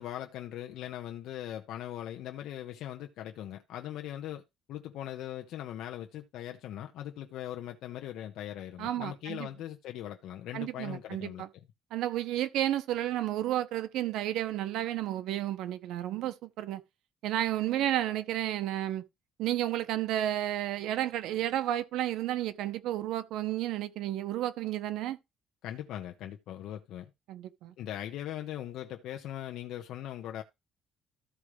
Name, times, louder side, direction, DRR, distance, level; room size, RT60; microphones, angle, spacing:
voice 1, 0.0-4.4 4.7-11.6 25.6-27.1 27.8-30.4, left 12 dB, 70° left, 0.9 m, -40 dB
voice 2, 8.8-9.5 10.5-11.5 11.9-16.8 17.2-19.0 19.4-25.2 27.3-27.7, right 13 dB, 75° right, 0.9 m, -32 dB
14.0 x 4.9 x 3.2 m
cardioid pair, 175°, 0 cm